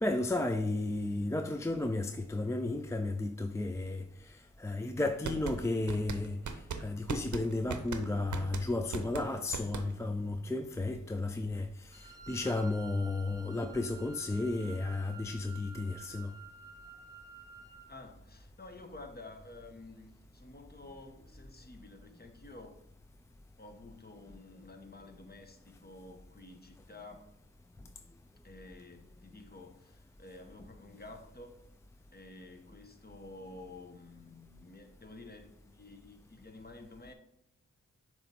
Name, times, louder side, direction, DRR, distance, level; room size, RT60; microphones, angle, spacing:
voice 1, 0.0-6.4 6.8-16.3, left 2 dB, 10° left, 0.4 m, -33 dB
sound 1, 5.2-10.2, right 6 dB, 75° right, 0.7 m, -39 dB
Wind instrument woodwind instrument, 11.9-17.9, right 5 dB, 10° right, 0.8 m, -51 dB
voice 2, 17.9-22.8 23.6-27.3 28.4-31.6 32.1-37.1, left 2 dB, 30° left, 0.9 m, -51 dB
7.1 x 3.1 x 4.3 m
cardioid pair, 60°, 30 cm